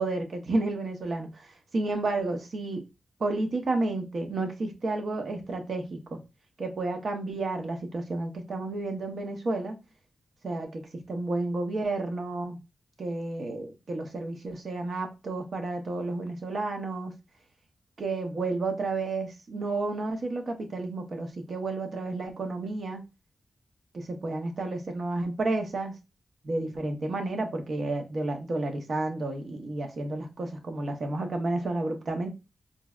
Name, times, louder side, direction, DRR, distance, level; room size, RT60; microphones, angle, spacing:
voice 1, 0.0-2.8 3.2-6.2 6.6-9.7 10.4-12.6 13.0-17.1 18.0-23.0 23.9-25.9 26.4-32.3, right 2 dB, 65° right, 0.8 m, -31 dB
3.9 x 2.1 x 2.3 m
cardioid pair, 45°, 0 cm